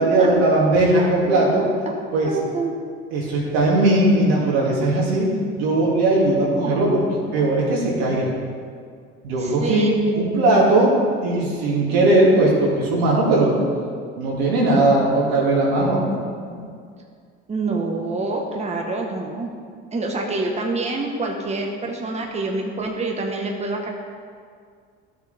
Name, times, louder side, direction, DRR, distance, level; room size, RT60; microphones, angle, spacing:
voice 1, 0.0-1.7 2.1-2.3 3.1-5.3 5.6-7.0 7.3-8.3 9.2-9.9 10.1-13.6 14.2-16.1 16.4-16.6, right 2 dB, 85° right, -4 dB, 2.4 m, -18 dB
voice 2, 1.0-1.5 1.9-2.0 2.2-2.7 6.6-7.1 9.4-10.6 17.5-19.5 19.9-23.9, right 3 dB, 20° right, 1 dB, 1.2 m, -27 dB
12.0 x 6.7 x 3.4 m, 2.1 s
supercardioid pair, 85°, 29 cm